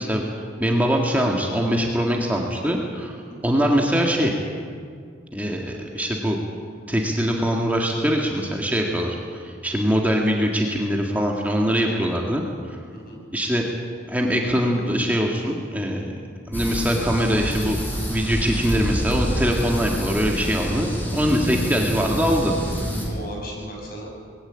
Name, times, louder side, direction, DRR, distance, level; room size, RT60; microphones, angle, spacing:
voice 1, 0.0-3.1 3.4-4.3 5.3-6.4 6.9-12.8 13.3-13.6 14.1-16.2 16.5-17.8 18.1-22.5, equal, 10° right, 0 dB, 1.7 m, -23 dB
voice 2, 11.7-12.3 12.9-13.2 23.0-24.1, right 1 dB, 50° left, -1 dB, 6.4 m, -37 dB
sound 1, 16.5-23.1, equal, 10° left, 4.3 m, -27 dB
21.0 x 15.5 x 8.8 m, 2.1 s
head